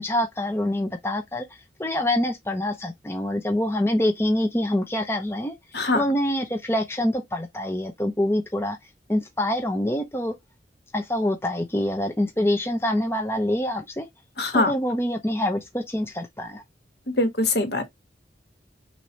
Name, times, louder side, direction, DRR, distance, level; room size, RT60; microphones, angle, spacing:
voice 1, 0.0-1.4 1.8-5.5 5.9-8.8 9.1-10.3 10.9-14.1 14.5-16.6, left 1 dB, 15° left, 0.7 m, -25 dB
voice 2, 5.7-6.0 14.4-14.7 17.1-17.9, left 2 dB, 65° left, 1.5 m, -23 dB
5.9 x 2.7 x 3.2 m
head